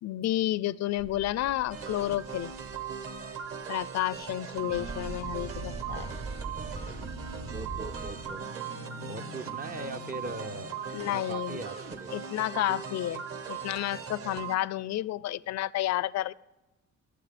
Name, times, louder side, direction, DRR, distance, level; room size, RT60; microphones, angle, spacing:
voice 1, 0.0-2.5 3.7-6.1 10.9-11.6 12.1-13.2 13.5-16.3, left 14 dB, 60° left, 21 dB, 0.5 m, -31 dB
sound 1, 1.0-3.8 4.1-4.3 4.5-8.4, right 3 dB, 65° right, 4.0 m, -42 dB
sound 2, 1.7-14.6, right 7 dB, 50° right, 1.2 m, -39 dB
sound 3, 4.6-10.7, right 1 dB, 85° right, 1.2 m, -47 dB
voice 2, 7.5-8.4 9.1-10.8 11.1-12.1, right 3 dB, 30° right, 7 dB, 0.5 m, -40 dB
19.5 x 7.9 x 3.4 m, 1.0 s
cardioid pair, 90°, 30 cm